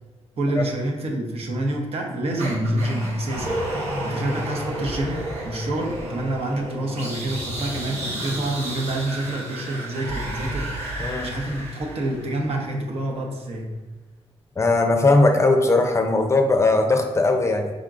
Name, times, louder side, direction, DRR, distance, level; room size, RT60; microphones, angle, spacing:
voice 1, 0.4-3.5 4.0-13.7, right 1 dB, 65° right, 1 dB, 0.9 m, -27 dB
sound 1, 2.4-12.6, right 1 dB, 85° right, 1.1 m, -31 dB
voice 2, 11.0-11.3 14.6-17.7, left 2 dB, 25° left, 5 dB, 0.5 m, -19 dB
5.0 x 3.6 x 2.5 m, 1.2 s
cardioid pair, 95°, 11 cm